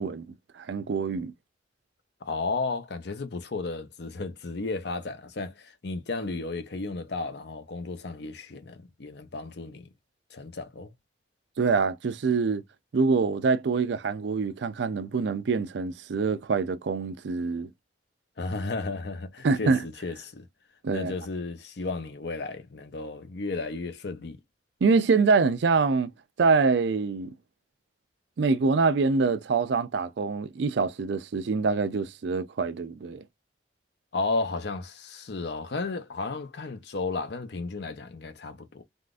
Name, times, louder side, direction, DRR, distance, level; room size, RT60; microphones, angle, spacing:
voice 1, 0.0-1.3 11.6-12.6 12.9-17.7 19.4-19.8 20.8-21.1 24.8-26.1 26.4-27.3 28.4-33.2, right 4 dB, 65° right, 0.4 m, -25 dB
voice 2, 2.2-9.9 10.3-10.9 18.4-20.5 20.9-24.4 34.1-38.8, left 3 dB, 60° left, 0.7 m, -33 dB
3.6 x 2.4 x 2.4 m
head